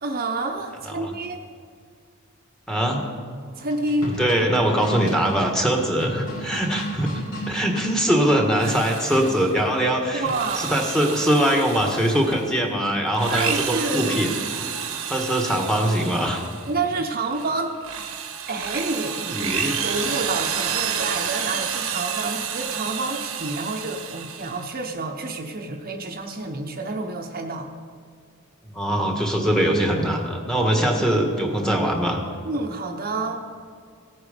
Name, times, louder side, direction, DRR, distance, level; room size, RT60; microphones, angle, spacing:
voice 1, 0.0-1.4 3.6-4.1 8.6-8.7 10.1-10.8 13.3-14.1 16.7-17.8 18.5-27.7 30.9-31.0 32.5-33.5, right 3 dB, 45° right, 2 dB, 0.9 m, -28 dB
voice 2, 2.7-3.0 4.2-7.1 7.5-10.3 10.6-14.3 14.6-14.7 15.1-16.4 19.3-19.8 28.6-32.2, right 1 dB, 5° left, 1 dB, 1.5 m, -22 dB
sound 1, 3.6-7.9 9.1-9.5, equal, 70° left, 3.4 m, -33 dB
Drill, 8.4-9.6 10.1-12.5 13.1-16.8 17.3-24.7, right 7 dB, 75° right, 1.1 m, -30 dB
17.0 x 9.1 x 5.2 m, 2.2 s
head